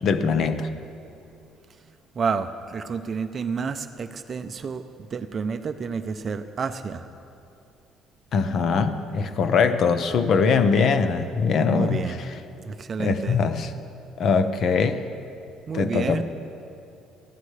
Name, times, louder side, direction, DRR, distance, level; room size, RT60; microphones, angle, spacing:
voice 1, 0.0-0.7 8.3-12.3 13.0-13.7 14.2-15.0 15.7-16.2, left 5 dB, 45° left, 10 dB, 0.7 m, -22 dB
voice 2, 2.2-4.8 5.1-7.0 11.6-12.2 12.6-13.4 15.7-16.2, right 5 dB, 30° right, 9 dB, 0.5 m, -29 dB
22.0 x 15.5 x 3.3 m, 2.7 s
cardioid pair, 160°, 0 cm